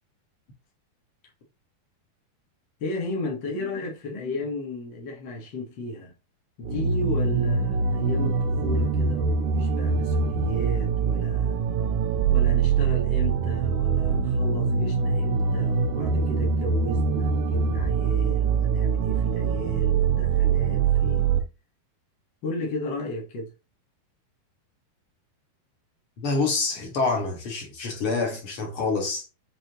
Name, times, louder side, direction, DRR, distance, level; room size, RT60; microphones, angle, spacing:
voice 1, 2.8-6.1 6.6-11.6 12.3-21.3 22.4-23.5, left 2 dB, 65° left, 1.1 m, -34 dB
sound 1, 6.6-21.4, right 6 dB, 80° right, 1.7 m, -24 dB
voice 2, 26.2-29.3, left 3 dB, 45° left, 1.9 m, -27 dB
7.7 x 4.2 x 3.0 m
omnidirectional pair, 4.6 m